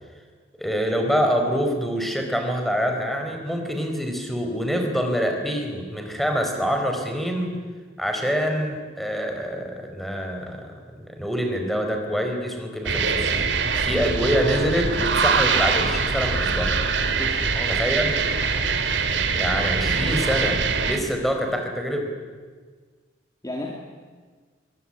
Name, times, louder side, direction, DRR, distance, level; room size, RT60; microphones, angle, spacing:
voice 1, 0.6-7.6 8.0-13.4 13.8-16.7 17.7-18.2 19.3-22.1, equal, ahead, 3 dB, 4.6 m, -25 dB
sound 1, 12.9-21.0, right 5 dB, 90° right, 2.5 m, -23 dB
voice 2, 17.2-17.9 23.4-23.7, left 1 dB, 20° left, 0 dB, 2.9 m, -33 dB
24.0 x 22.5 x 10.0 m, 1.5 s
head